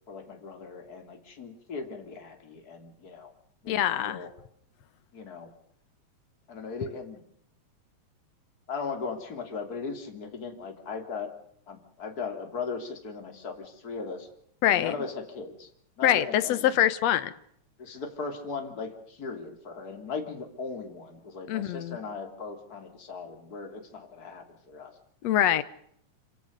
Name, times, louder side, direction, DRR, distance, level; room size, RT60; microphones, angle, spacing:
voice 1, 0.1-3.3 3.6-4.3 5.1-5.5 6.5-7.2 8.7-11.3 11.7-14.3 14.7-15.7 16.0-16.8 17.8-24.9, left 4 dB, 30° left, 4 dB, 3.5 m, -38 dB
voice 2, 3.7-4.2 14.6-15.0 16.0-17.3 21.5-22.0 25.2-25.6, left 11 dB, 65° left, 13 dB, 2.2 m, -24 dB
27.5 x 17.0 x 6.7 m, 0.69 s
omnidirectional pair, 3.4 m